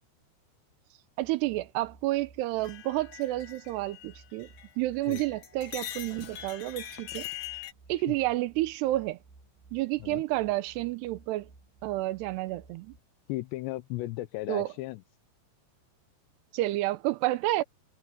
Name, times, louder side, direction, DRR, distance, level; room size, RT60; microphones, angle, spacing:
sound 1, 1.2-13.0, right 3 dB, 65° right, 3.4 m, -57 dB
voice 1, 1.2-4.5 4.8-7.3 7.9-9.2 9.7-11.5 11.8-12.9 14.5-14.7 16.5-17.6, right 17 dB, 85° right, 2.8 m, -30 dB
sound 2, 2.6-4.7 5.0-7.7, left 11 dB, 70° left, 4.2 m, -42 dB
voice 2, 13.3-15.0, left 18 dB, 85° left, 3.0 m, -35 dB
omnidirectional pair, 5.0 m